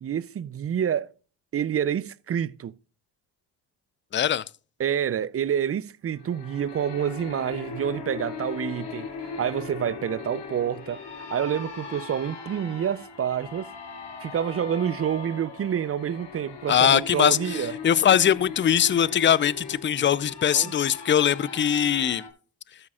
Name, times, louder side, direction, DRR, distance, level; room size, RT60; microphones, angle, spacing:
voice 1, 0.0-1.1 1.5-2.8 4.8-11.0 11.3-13.7 14.2-17.7 20.5-20.7, right 9 dB, 30° right, 0.5 m, -28 dB
voice 2, 4.1-4.4 16.7-22.2, left 9 dB, 25° left, 0.5 m, -21 dB
sound 1, 6.1-22.3, left 5 dB, 65° left, 2.2 m, -39 dB
13.0 x 8.8 x 2.4 m
supercardioid pair, 55°, 45 cm